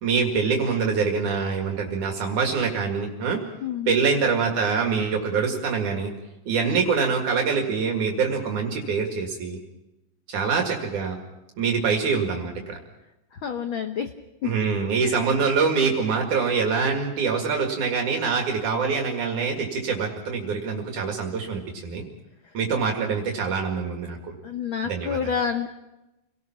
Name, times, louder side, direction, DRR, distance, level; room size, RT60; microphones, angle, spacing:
voice 1, 0.0-3.4 3.9-6.1 6.5-9.6 10.3-11.2 11.6-12.8 14.4-22.0 22.6-24.2 24.8-25.2, right 5 dB, 70° right, 2 dB, 3.5 m, -25 dB
voice 2, 3.6-3.9 13.4-14.1 15.0-15.2 24.4-25.7, left 7 dB, 75° left, 7 dB, 1.1 m, -28 dB
28.5 x 18.5 x 5.9 m, 0.97 s
omnidirectional pair, 3.6 m